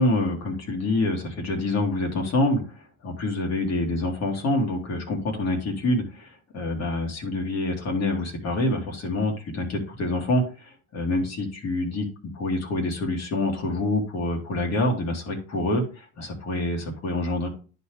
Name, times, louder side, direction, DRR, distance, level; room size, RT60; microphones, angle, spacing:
voice 1, 0.0-2.6 3.0-12.1 12.3-17.5, left 2 dB, 55° left, 1 dB, 2.7 m, -26 dB
10.5 x 4.2 x 3.5 m, 0.37 s
supercardioid pair, 85°, 32 cm